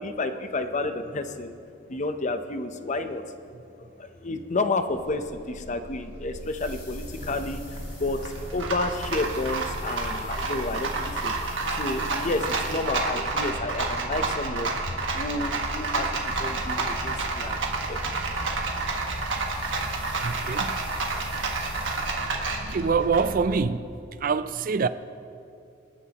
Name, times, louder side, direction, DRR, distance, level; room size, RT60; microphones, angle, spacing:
voice 1, 0.0-1.6 1.9-3.2 4.0-16.1 16.4-17.6 17.9-18.2 18.5-18.6, left 2 dB, 40° left, 0.7 m, -31 dB
Rattle, 5.0-23.6, right 3 dB, 70° right, 1.5 m, -30 dB
sound 1, 6.3-13.4 15.2-22.5, left 4 dB, 65° left, 3.7 m, -51 dB
voice 2, 20.2-20.8 22.6-24.9, right 5 dB, 45° right, 0.4 m, -25 dB
27.0 x 9.8 x 3.0 m
head